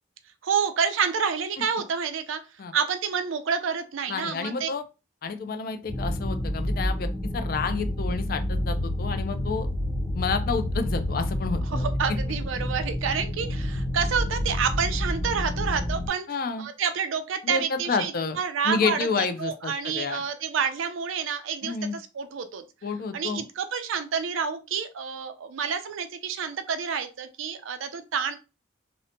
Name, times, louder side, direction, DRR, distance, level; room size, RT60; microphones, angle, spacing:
voice 1, 0.4-2.4 2.7-4.7 11.7-16.3 16.6-22.6 23.1-28.4, right 6 dB, 80° right, 10 dB, 0.4 m, -29 dB
voice 2, 4.1-4.8 5.2-7.1 7.3-9.7 10.1-12.2 16.3-16.7 17.4-18.4 18.6-20.2 21.6-22.0 22.8-23.4, left 4 dB, 45° left, 8 dB, 0.3 m, -29 dB
sound 1, 5.9-16.1, left 1 dB, 5° right, 0.6 m, -29 dB
2.7 x 2.1 x 2.7 m, 0.30 s
head